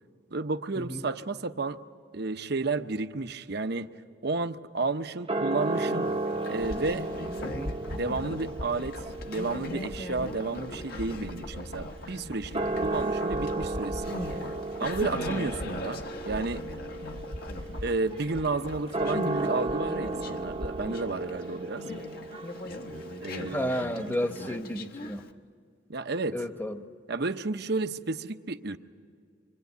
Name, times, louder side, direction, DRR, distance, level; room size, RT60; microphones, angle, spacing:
voice 1, 0.3-1.8 2.1-3.9 4.2-6.1 6.5-7.1 7.9-14.2 14.8-16.6 17.8-21.8 23.2-23.7 25.9-26.4 27.1-28.8, right 3 dB, 60° right, 9 dB, 0.9 m, -32 dB
sound 1, 5.3-11.9 12.4-24.6, right 2 dB, 30° right, 0.8 m, -35 dB
Conversation, 5.6-25.3, left 2 dB, 55° left, 1.3 m, -41 dB
sound 2, 6.3-21.0 21.3-21.4, left 1 dB, 80° left, 2.1 m, -42 dB
voice 2, 7.4-7.8 15.1-15.4 23.5-25.2 26.3-26.7, equal, 10° left, 7 dB, 1.1 m, -32 dB
25.5 x 25.0 x 9.4 m, 2.2 s
head